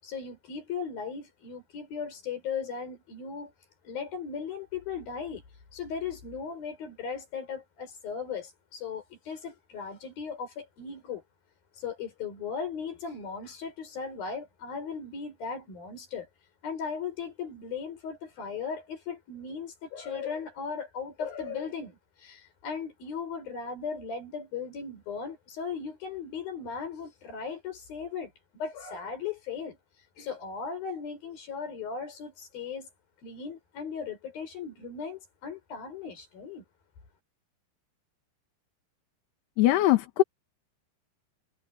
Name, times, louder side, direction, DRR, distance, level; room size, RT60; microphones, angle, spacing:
voice 1, 0.0-3.5 3.9-5.4 5.7-11.2 11.8-16.3 16.6-29.8 30.2-32.9 33.2-36.6, left 6 dB, 60° left, 7.1 m, -37 dB
voice 2, 39.6-40.2, left 15 dB, 80° left, 3.6 m, -21 dB
omnidirectional pair, 4.7 m